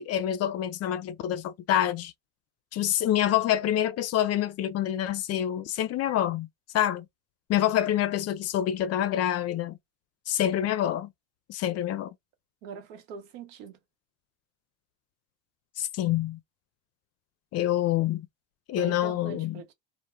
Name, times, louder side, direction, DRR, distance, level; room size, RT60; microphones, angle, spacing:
voice 1, 0.0-2.1 2.7-6.5 6.7-7.1 7.5-9.8 10.3-11.1 11.5-12.1 15.8-16.4 17.5-18.3 18.7-19.6, left 11 dB, 45° left, 0.5 m, -27 dB
voice 2, 12.6-13.8 18.8-19.7, right 6 dB, 80° right, 0.9 m, -41 dB
2.2 x 2.1 x 3.1 m
supercardioid pair, 90°, 37 cm